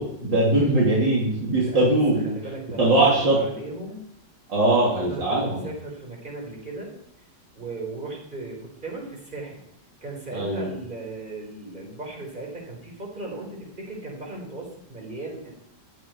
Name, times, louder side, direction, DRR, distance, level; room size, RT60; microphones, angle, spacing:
voice 1, 0.0-2.3 2.8-3.4 4.5-5.7 10.3-10.7, right 2 dB, 75° right, -5 dB, 3.8 m, -21 dB
voice 2, 2.2-4.0 4.6-6.9 7.5-9.6 10.0-15.5, right 2 dB, 25° right, 0 dB, 4.6 m, -37 dB
15.5 x 12.5 x 4.7 m, 0.73 s
omnidirectional pair, 2.0 m